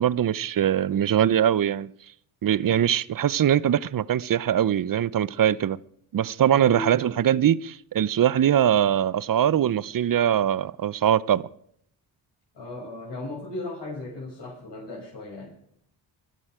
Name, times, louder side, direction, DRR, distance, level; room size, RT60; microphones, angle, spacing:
voice 1, 0.0-1.9 2.4-5.8 6.1-11.5, right 10 dB, 40° right, 0.8 m, -22 dB
voice 2, 6.5-7.2 12.5-15.5, left 2 dB, 55° left, 7.2 m, -36 dB
21.5 x 12.5 x 5.0 m
supercardioid pair, 50°, 49 cm